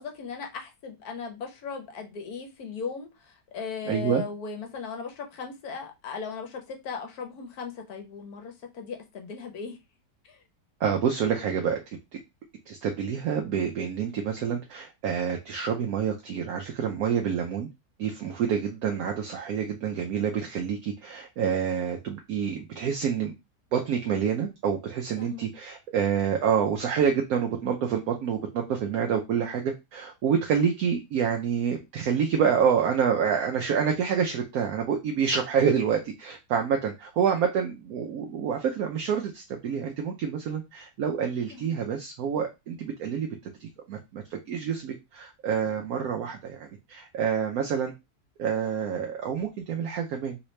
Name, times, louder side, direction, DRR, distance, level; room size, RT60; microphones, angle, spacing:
voice 1, 0.0-9.8 10.2-10.4 25.2-25.5 41.5-41.8, left 5 dB, 65° left, 1.2 m, -37 dB
voice 2, 3.9-4.2 10.8-11.8 12.7-17.7 18.0-23.3 23.7-43.3 43.6-47.9 48.4-50.4, right 7 dB, 70° right, 1.0 m, -27 dB
3.2 x 2.9 x 3.1 m
omnidirectional pair, 1.8 m